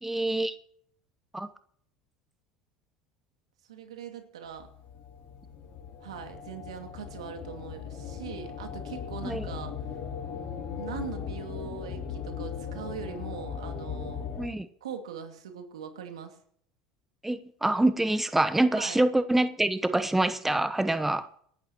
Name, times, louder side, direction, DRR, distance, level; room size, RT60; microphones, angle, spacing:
voice 1, 0.0-0.6 1.3-1.5 9.2-9.5 14.4-14.7 17.2-21.3, right 2 dB, 10° right, 1.0 m, -26 dB
voice 2, 3.7-4.7 6.0-9.8 10.8-14.3 14.8-16.4 18.7-19.0, right 7 dB, 90° right, 2.3 m, -41 dB
sound 1, 4.6-14.5, left 7 dB, 60° left, 3.3 m, -38 dB
27.0 x 11.5 x 3.0 m
hypercardioid pair, 85°, 3 cm